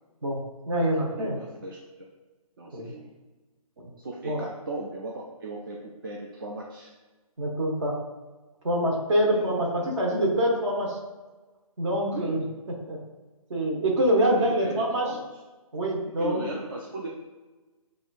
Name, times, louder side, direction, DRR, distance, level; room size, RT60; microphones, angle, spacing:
voice 1, 0.2-1.4 2.7-2.9 3.8-3.9 4.2-4.4 7.4-8.0 8.6-11.0 11.8-12.4 12.9-13.0 13.5-15.1 15.7-16.4, right 1 dB, 50° right, -1 dB, 1.2 m, -25 dB
voice 2, 0.9-2.1 2.6-3.1 4.0-6.9 9.3-9.5 9.8-9.9 12.1-12.4 14.3-15.2 16.2-17.1, right 2 dB, 35° right, -1 dB, 0.4 m, -37 dB
7.5 x 2.6 x 2.5 m, 1.2 s
hypercardioid pair, 165°, 19 cm